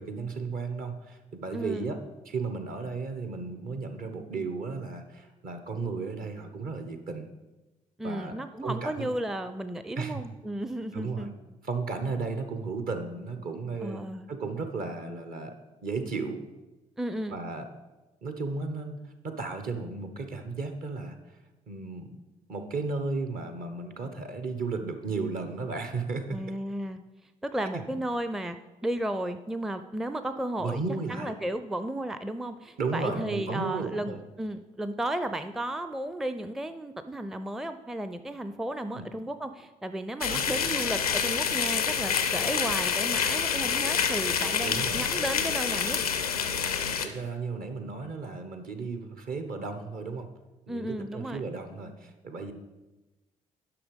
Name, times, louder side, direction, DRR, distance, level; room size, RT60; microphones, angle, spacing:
voice 1, 0.0-2.0 2.3-7.3 8.0-8.3 8.6-9.1 10.0-10.2 10.9-11.3 11.6-16.4 17.3-17.7 18.2-21.2 21.7-22.2 22.5-26.4 27.7-27.8 30.6-31.3 32.8-34.2 38.9-39.1 40.3-40.4 44.6-45.2 47.0-50.3 50.7-52.5, right 4 dB, 50° right, 8 dB, 1.1 m, -34 dB
voice 2, 1.5-1.9 8.0-11.3 13.8-14.3 17.0-17.4 26.3-27.0 27.4-28.6 28.8-30.8 31.1-46.0 50.7-51.5, right 1 dB, ahead, 10 dB, 0.5 m, -34 dB
sound 1, 40.2-47.1, left 7 dB, 85° left, 0.5 m, -27 dB
10.0 x 6.0 x 5.3 m, 1.1 s
figure-of-eight pair, 40°, 18 cm